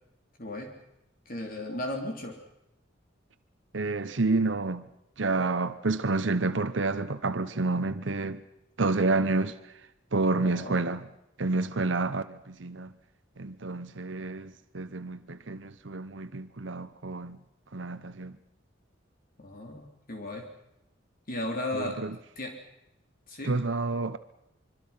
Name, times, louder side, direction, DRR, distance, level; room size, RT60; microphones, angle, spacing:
voice 1, 0.4-0.7 1.2-2.4 10.4-10.8 19.4-20.4 21.3-22.0 22.4-22.6 23.3-23.6, left 1 dB, 50° left, 3.3 m, -35 dB
voice 2, 3.7-4.9 5.2-8.4 8.8-9.7 10.1-11.0 11.4-12.9 13.4-17.4 17.7-18.3 21.7-22.2 23.4-24.2, right 3 dB, 70° right, 0.9 m, -29 dB
25.5 x 24.0 x 5.8 m
head